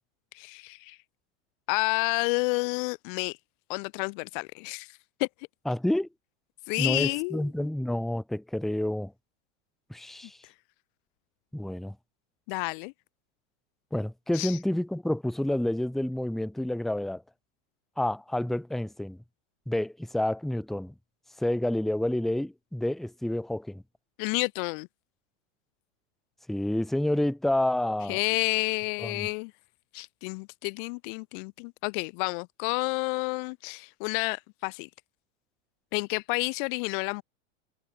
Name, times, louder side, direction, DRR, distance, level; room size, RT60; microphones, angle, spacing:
voice 1, 0.3-1.0 1.7-3.4 3.7-5.3 6.7-7.5 12.5-12.9 14.3-14.6 24.2-24.9 28.1-29.5 29.9-34.9 35.9-37.2, left 33 dB, 40° left, 0.9 m, -30 dB
voice 2, 5.7-6.1 6.8-9.1 9.9-10.4 11.5-11.9 13.9-17.2 18.0-19.2 19.7-20.9 21.4-23.8 26.5-28.2 29.0-29.3, left 1 dB, ahead, 1.1 m, -29 dB
supercardioid pair, 160°, 38 cm